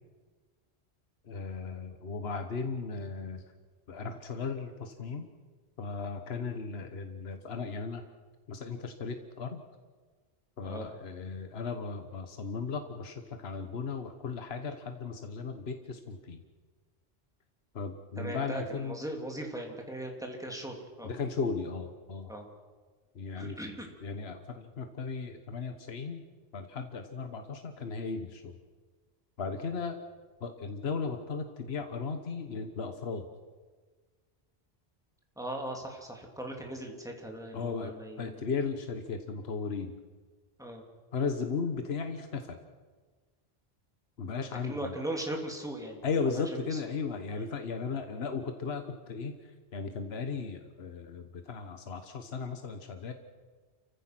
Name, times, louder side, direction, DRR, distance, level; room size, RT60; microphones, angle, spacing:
voice 1, 1.2-3.4 3.9-5.3 5.8-8.0 8.5-9.6 10.6-16.4 17.7-19.0 21.0-22.3 23.1-23.6 24.0-26.2 26.5-28.6 29.4-30.0 30.4-33.3 37.5-39.9 41.1-42.6 44.2-44.9 46.0-53.1, left 5 dB, 75° left, 7 dB, 1.4 m, -36 dB
voice 2, 18.2-21.1 22.3-22.5 23.4-23.9 35.4-38.4 40.6-40.8 44.6-46.0 46.3-46.4 46.7-46.8 47.4-47.5, right 1 dB, 5° right, 1 dB, 2.8 m, -39 dB
29.0 x 15.5 x 6.0 m, 1.4 s
omnidirectional pair, 1.1 m